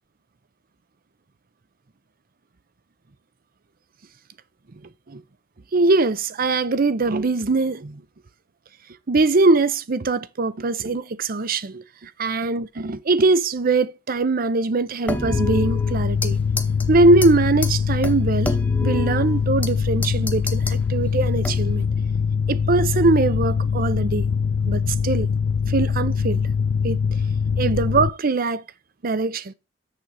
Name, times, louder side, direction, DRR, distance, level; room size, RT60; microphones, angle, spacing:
voice 1, 5.7-8.0 9.1-16.4 16.9-18.5 18.8-21.9 22.5-24.3 24.7-25.3 25.7-26.4 26.8-27.0 27.6-28.6 29.0-29.5, right 3 dB, 50° right, 0.6 m, -21 dB
sound 1, 15.1-16.3 16.6-16.9 17.2-17.3 17.6-17.7 18.0-19.7 20.0-20.8 21.4-21.9, left 2 dB, 10° left, 0.9 m, -29 dB
Mechanical fan, 15.3-28.1, left 6 dB, 80° left, 0.4 m, -23 dB
7.3 x 6.6 x 4.8 m
head